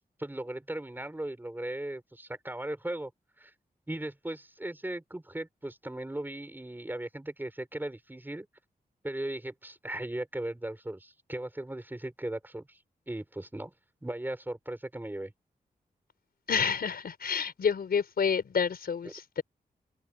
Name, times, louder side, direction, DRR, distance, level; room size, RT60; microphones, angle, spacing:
voice 1, 0.2-3.1 3.4-3.5 3.9-8.5 9.0-12.8 13.1-13.7 14.0-15.3, right 1 dB, 10° right, 5.0 m, -37 dB
voice 2, 16.5-19.4, left 6 dB, 80° left, 4.4 m, -29 dB
wide cardioid pair, 130°, 16 cm